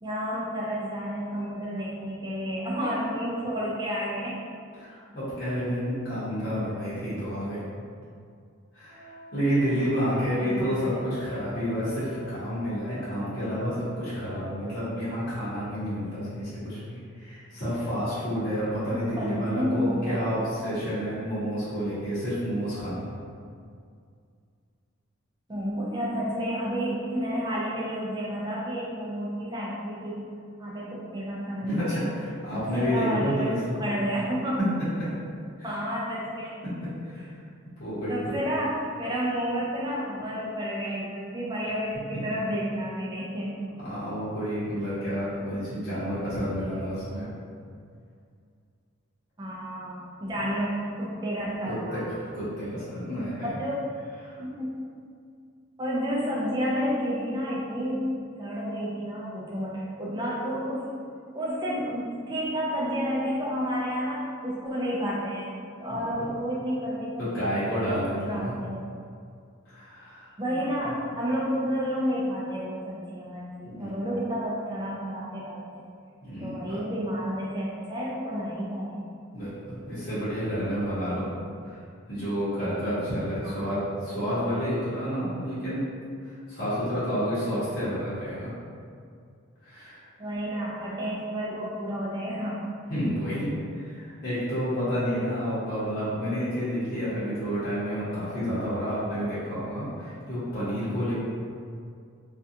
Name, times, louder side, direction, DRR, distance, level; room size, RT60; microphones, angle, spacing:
voice 1, 0.0-4.4 10.4-11.0 18.9-20.3 25.5-30.3 30.6-32.0 32.5-33.5 33.8-34.6 35.6-36.6 38.1-43.6 49.4-52.0 53.6-53.7 54.4-54.8 55.8-61.0 61.3-65.5 65.8-68.9 70.4-75.9 76.4-79.0 83.4-83.7 90.2-92.7, equal, 20° right, -6 dB, 0.4 m, -31 dB
voice 2, 4.8-7.6 8.7-23.1 31.6-33.6 34.6-34.7 35.0-35.1 35.7-35.8 36.6-37.4 37.8-38.3 42.1-42.2 43.8-47.3 51.6-53.6 54.2-54.4 65.9-66.0 67.2-68.6 69.6-70.6 73.6-74.0 76.2-76.8 79.3-81.3 81.6-81.8 82.1-85.9 86.2-88.5 89.6-90.1 92.9-101.1, equal, 45° left, -13 dB, 0.9 m, -30 dB
Wind instrument woodwind instrument, 8.9-14.1, left 1 dB, 65° right, 0.8 m, -46 dB
2.4 x 2.2 x 2.7 m, 2.3 s
head